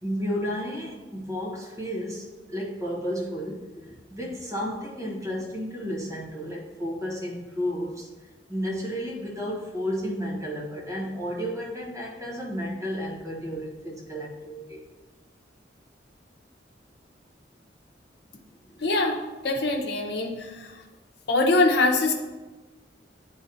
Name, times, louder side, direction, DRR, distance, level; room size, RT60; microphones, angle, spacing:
voice 1, 0.0-8.1 8.5-14.8 18.7-18.8, equal, 15° right, -4 dB, 1.1 m, -32 dB
voice 2, 18.8-20.7 21.3-22.1, left 2 dB, 60° left, 2 dB, 0.8 m, -23 dB
9.7 x 4.0 x 2.7 m, 1.2 s
head